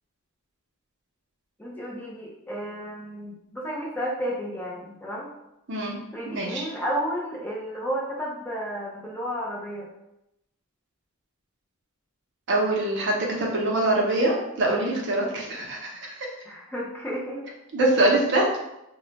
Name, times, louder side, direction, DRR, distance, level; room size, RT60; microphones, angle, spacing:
voice 1, 1.6-5.3 6.1-9.9 14.6-15.0 16.5-17.5, equal, 10° left, -4 dB, 0.4 m, -32 dB
voice 2, 5.7-6.0 6.2-6.6 12.5-16.3 17.7-18.5, right 2 dB, 50° right, -2 dB, 0.6 m, -24 dB
2.2 x 2.1 x 3.8 m, 0.87 s
head